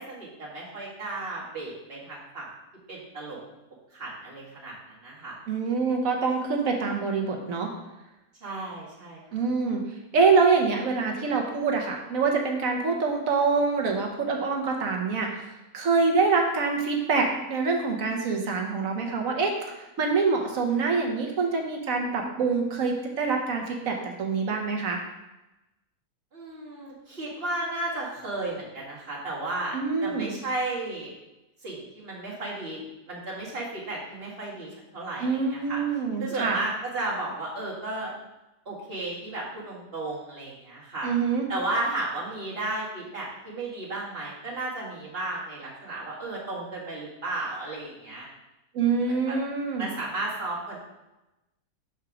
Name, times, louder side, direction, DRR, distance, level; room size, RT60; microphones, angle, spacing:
voice 1, 0.0-2.5 2.9-3.4 3.9-5.4 8.4-9.4 26.3-29.8 30.0-31.1 31.6-35.8 36.2-38.1 38.7-41.1 41.5-48.3 48.8-49.0 49.3-49.4 49.8-50.8, right 2 dB, 40° right, -6 dB, 2.1 m, -34 dB
voice 2, 5.5-7.7 9.3-9.8 10.1-25.0 29.7-30.3 35.2-36.6 41.0-41.4 48.7-49.9, right 4 dB, 65° right, 2 dB, 1.3 m, -25 dB
4.9 x 4.4 x 6.0 m, 0.98 s
omnidirectional pair, 1.6 m